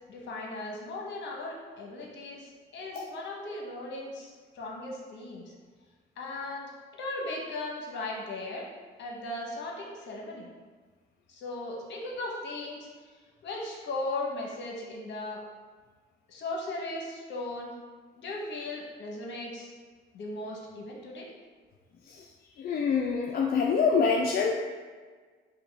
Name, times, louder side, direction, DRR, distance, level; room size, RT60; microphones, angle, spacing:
voice 1, 0.1-5.4 6.2-8.7 9.0-10.5 11.3-12.8 13.4-15.4 16.3-17.7 18.1-19.7 20.1-21.3, left 2 dB, 65° left, -1 dB, 1.0 m, -37 dB
voice 2, 22.6-24.6, left 5 dB, 50° left, -1 dB, 0.4 m, -26 dB
4.9 x 2.2 x 3.3 m, 1.5 s
cardioid pair, 90°, 20 cm